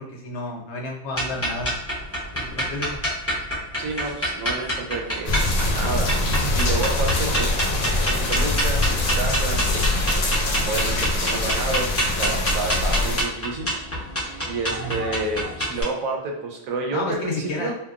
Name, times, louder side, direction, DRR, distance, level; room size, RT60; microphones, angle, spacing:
voice 1, 0.0-1.7 2.3-3.0 14.7-15.0 16.9-17.7, left 2 dB, 60° left, -1 dB, 0.9 m, -31 dB
sound 1, 1.1-15.8, right 1 dB, 15° left, 0.5 m, -27 dB
voice 2, 3.8-5.3 5.6-6.2 6.5-7.6 8.0-10.1 10.7-14.0 14.5-17.7, right 3 dB, 85° right, 1 dB, 1.1 m, -30 dB
sound 2, 5.3-13.2, left 2 dB, 85° left, 1.1 m, -23 dB
2.9 x 2.2 x 2.3 m, 0.90 s
omnidirectional pair, 1.4 m